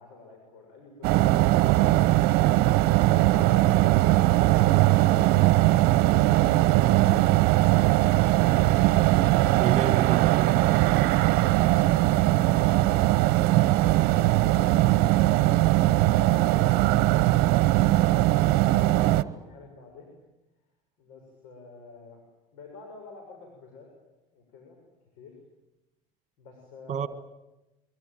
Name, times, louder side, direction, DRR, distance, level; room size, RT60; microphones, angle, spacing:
voice 1, 0.0-2.2 3.1-9.7 10.6-13.2 13.8-15.4 15.9-20.2 21.0-22.2 22.5-23.9 24.3-24.8 25.1-25.3 26.4-27.0, left 3 dB, 75° left, 7.0 m, -50 dB
sound 1, 1.0-19.2, right 17 dB, 60° right, 1.0 m, -20 dB
voice 2, 9.5-10.6 26.9-27.1, right 9 dB, 40° right, 1.7 m, -30 dB
24.0 x 24.0 x 9.3 m
hypercardioid pair, 75°, 18 cm